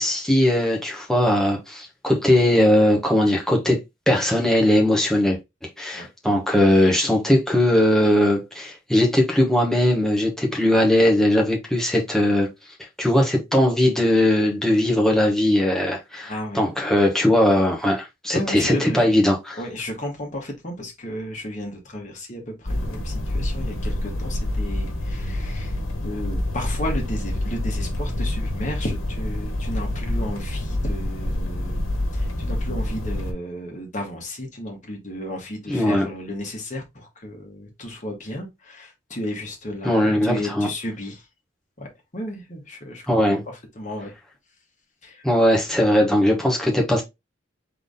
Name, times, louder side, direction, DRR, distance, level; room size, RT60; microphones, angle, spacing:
voice 1, 0.0-3.8 4.1-5.4 5.8-12.5 13.0-19.6 35.7-36.1 39.8-40.7 43.1-43.4 45.2-47.0, left 1 dB, 5° left, 1.3 m, -19 dB
voice 2, 16.2-16.6 18.3-19.1 19.5-31.8 32.1-41.3 41.8-41.9 42.1-43.0 43.3-44.1 45.0-45.3, left 1 dB, 40° left, 1.6 m, -33 dB
sound 1, 22.6-33.3, left 1 dB, 85° left, 1.3 m, -27 dB
3.9 x 3.7 x 3.6 m
head